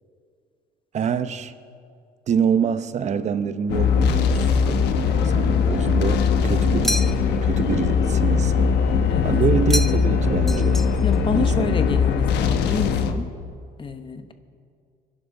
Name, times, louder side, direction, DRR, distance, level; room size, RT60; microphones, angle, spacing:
voice 1, 0.9-1.5 2.3-7.1 7.4-8.7 9.2-10.9 11.3-11.8, right 7 dB, 45° right, 0.8 m, -26 dB
sound 1, 3.7-13.1, left 6 dB, 80° left, 1.0 m, -20 dB
voice 2, 5.2-5.6 9.1-9.3 11.0-13.3 13.8-14.3, left 4 dB, 30° left, 1.1 m, -28 dB
sound 2, 6.8-7.5 9.7-10.2 10.5-11.2, left 1 dB, ahead, 0.4 m, -29 dB
24.5 x 11.5 x 3.9 m
cardioid pair, 110°, 17 cm